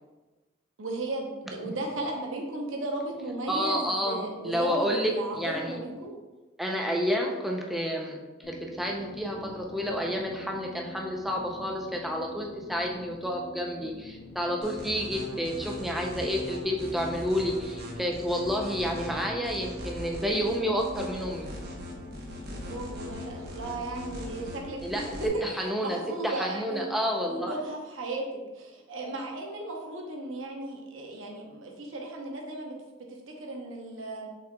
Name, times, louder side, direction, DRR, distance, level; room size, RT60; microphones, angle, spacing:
voice 1, 0.8-6.1 22.5-28.2 28.5-32.7 33.4-34.3, right 2 dB, 75° right, 0 dB, 0.8 m, -35 dB
voice 2, 3.5-4.2 4.4-5.8 6.6-8.2 8.5-21.5 24.8-26.0 26.2-27.5, equal, ahead, 0 dB, 0.5 m, -30 dB
sound 1, 8.4-24.6, left 1 dB, 55° left, 0.5 m, -46 dB
sound 2, 14.6-25.3, left 1 dB, 50° right, 0.9 m, -40 dB
5.6 x 3.8 x 2.3 m, 1.2 s
head